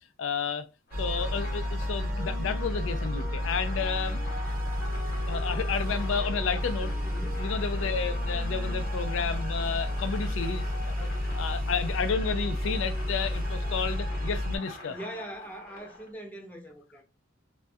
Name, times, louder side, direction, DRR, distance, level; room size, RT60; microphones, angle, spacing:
voice 1, 0.2-0.6 1.0-4.2 5.3-6.9 7.4-11.1 11.4-14.9, left 6 dB, 70° left, 0.4 m, -31 dB
sound 1, 0.9-16.1, left 2 dB, 50° left, 0.9 m, -45 dB
sound 2, 0.9-14.6, left 1 dB, 50° right, 0.5 m, -31 dB
Wind instrument woodwind instrument, 1.7-10.0, right 1 dB, 85° right, 0.8 m, -46 dB
voice 2, 7.0-7.5 14.9-17.0, right 1 dB, 10° left, 0.6 m, -42 dB
2.3 x 2.2 x 2.6 m
head